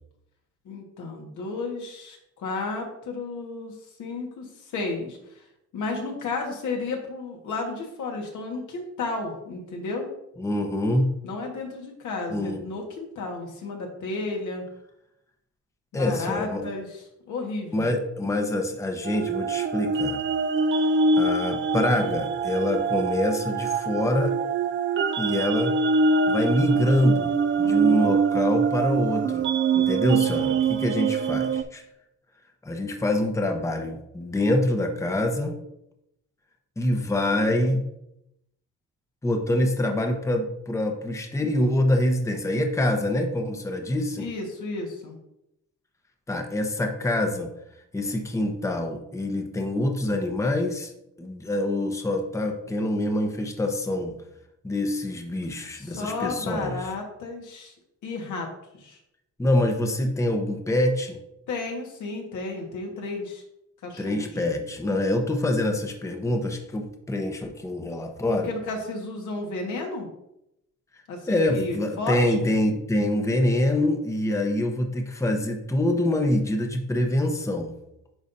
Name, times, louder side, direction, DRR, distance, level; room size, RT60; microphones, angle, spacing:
voice 1, 0.6-5.4 5.7-10.1 11.2-14.6 15.9-16.9 17.3-17.9 27.6-28.1 44.2-45.1 55.7-57.7 58.0-58.5 58.7-59.0 61.5-63.4 63.8-64.3 68.3-70.1 71.1-72.2, left 3 dB, 75° left, 1 dB, 1.6 m, -33 dB
voice 2, 10.4-11.1 12.3-12.6 15.9-16.7 17.7-20.2 21.2-24.4 25.2-25.7 26.3-27.3 27.6-29.5 29.7-31.8 32.6-35.6 36.8-37.8 39.2-44.3 46.3-47.5 47.9-50.9 51.2-54.2 54.6-56.8 59.4-61.2 64.0-68.5 71.3-77.7, left 1 dB, 10° left, 4 dB, 0.9 m, -25 dB
sound 1, 19.0-31.6, right 4 dB, 40° right, 0.5 m, -24 dB
10.5 x 4.0 x 2.7 m, 0.81 s
cardioid pair, 90°, 30 cm